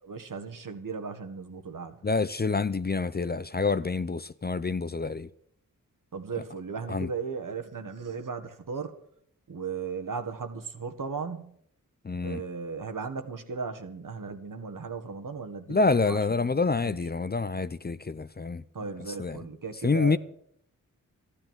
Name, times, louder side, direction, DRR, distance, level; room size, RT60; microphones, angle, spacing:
voice 1, 0.0-1.9 6.1-8.9 9.5-11.5 12.2-16.5 16.7-17.0 18.7-20.2, right 5 dB, 65° right, 1.7 m, -36 dB
voice 2, 2.0-5.3 6.9-7.1 12.0-12.4 15.7-18.6 19.2-19.4 19.8-20.2, left 4 dB, 30° left, 0.6 m, -27 dB
13.5 x 10.0 x 7.5 m
cardioid pair, 40°, 35 cm